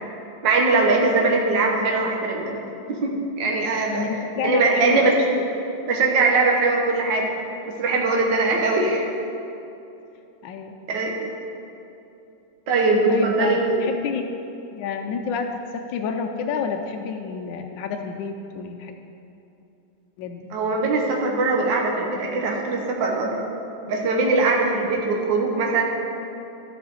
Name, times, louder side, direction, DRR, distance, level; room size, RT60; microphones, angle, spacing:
voice 1, 0.4-2.5 2.9-4.1 4.4-5.4 5.9-7.3 7.7-9.1 10.9-11.3 12.7-13.8 20.5-23.4 23.9-25.8, right 3 dB, 65° right, -1 dB, 1.6 m, -21 dB
voice 2, 3.9-5.1 10.4-10.8 13.1-14.2 14.7-15.5 15.7-19.0 20.2-20.5, left 6 dB, 75° left, 4 dB, 1.2 m, -29 dB
13.5 x 5.7 x 3.9 m, 2.8 s
omnidirectional pair, 2.2 m